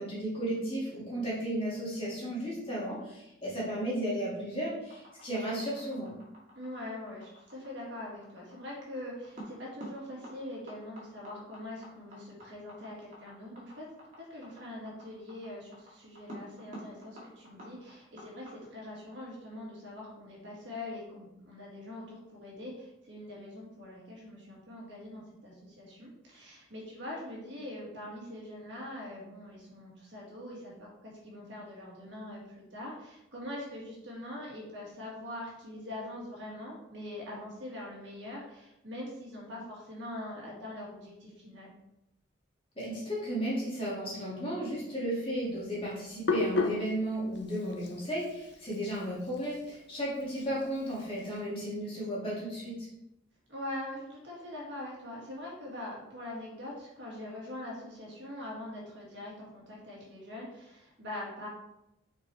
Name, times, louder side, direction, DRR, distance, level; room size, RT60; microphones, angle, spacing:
voice 1, 0.0-6.1 42.8-52.7, right 1 dB, 25° left, -7 dB, 2.2 m, -34 dB
sound 1, 4.9-18.5, equal, 35° right, 2.0 m, -49 dB
voice 2, 6.6-13.9 14.2-41.7 53.5-61.5, left 1 dB, 60° right, -4 dB, 2.0 m, -43 dB
Hands, 45.5-51.4, left 3 dB, 55° left, 0.7 m, -36 dB
6.4 x 4.6 x 3.4 m, 0.88 s
head